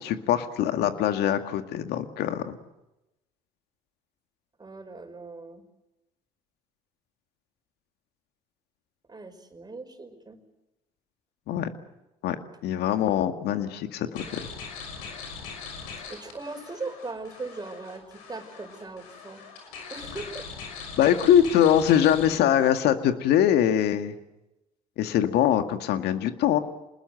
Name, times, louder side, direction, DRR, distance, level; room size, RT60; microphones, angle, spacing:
voice 1, 0.0-2.6 11.5-11.7 12.2-12.4 12.6-14.5 21.0-24.1 25.0-26.6, left 10 dB, 65° left, 8 dB, 2.0 m, -23 dB
voice 2, 4.6-5.7 9.1-10.4 16.1-19.4 19.9-20.4, right 3 dB, 20° right, 7 dB, 5.3 m, -39 dB
sound 1, 14.1-22.3, left 5 dB, 80° left, 6.2 m, -41 dB
27.0 x 20.0 x 7.9 m, 0.95 s
hypercardioid pair, 65°, 18 cm